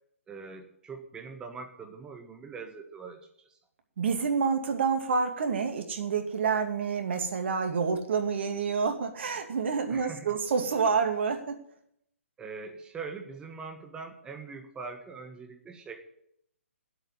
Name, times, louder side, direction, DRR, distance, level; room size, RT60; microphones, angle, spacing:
voice 1, 0.3-3.6 9.9-10.3 12.4-16.0, right 4 dB, 10° right, 5 dB, 1.7 m, -42 dB
voice 2, 4.0-11.6, right 5 dB, 55° right, 6 dB, 2.4 m, -28 dB
10.0 x 8.2 x 9.9 m, 0.71 s
figure-of-eight pair, 140°, 7 cm